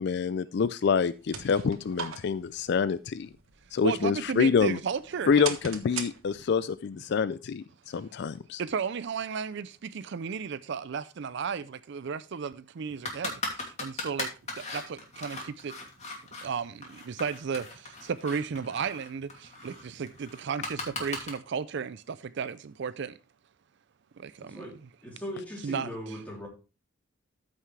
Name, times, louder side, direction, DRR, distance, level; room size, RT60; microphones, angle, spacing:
voice 1, 0.0-3.3 3.7-4.8 5.3-8.6, left 6 dB, 55° left, 0.4 m, -27 dB
sound 1, 0.9-6.7, right 7 dB, 85° right, 1.3 m, -42 dB
voice 2, 3.8-5.4 8.6-13.3 13.8-14.3 14.7-15.4 15.6-15.7 16.4-17.6 18.0-19.3 19.6-23.1 24.2-24.6 25.6-25.9, right 6 dB, 55° right, 0.4 m, -33 dB
sound 2, 13.0-16.5 16.8-21.3, left 3 dB, 35° left, 2.6 m, -38 dB
voice 3, 24.4-24.8 25.0-26.5, equal, 5° left, 3.2 m, -39 dB
14.0 x 5.7 x 3.2 m
head